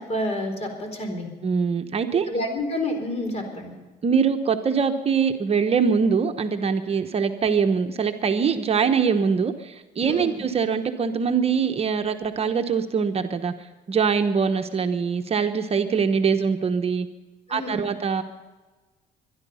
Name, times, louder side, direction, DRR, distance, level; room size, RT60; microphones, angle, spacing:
voice 1, 0.0-1.3 2.3-3.8 10.1-10.3 17.5-17.9, left 1 dB, 40° left, 5 dB, 4.2 m, -29 dB
voice 2, 1.4-2.3 4.0-13.5 13.9-17.1 17.5-18.2, right 6 dB, 35° right, 6 dB, 1.0 m, -23 dB
23.0 x 11.0 x 5.6 m, 1.3 s
cardioid pair, 110°, 17 cm